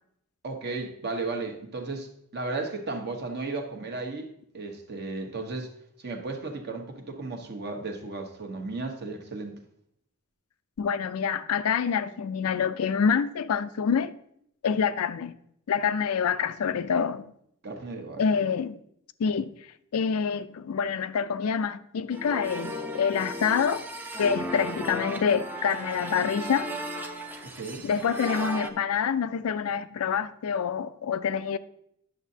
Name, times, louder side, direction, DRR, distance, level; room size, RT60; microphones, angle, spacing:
voice 1, 0.4-4.3 4.5-5.7 6.0-9.5 17.6-18.2 27.4-27.9, right 3 dB, 50° right, 1.1 m, -34 dB
voice 2, 10.8-14.1 14.6-15.3 15.7-17.3 18.2-18.8 19.2-19.5 19.9-23.9 24.2-26.7 27.8-31.6, left 6 dB, 75° left, 0.4 m, -26 dB
sound 1, 22.1-28.7, right 1 dB, 10° right, 0.5 m, -35 dB
10.0 x 6.5 x 2.7 m
head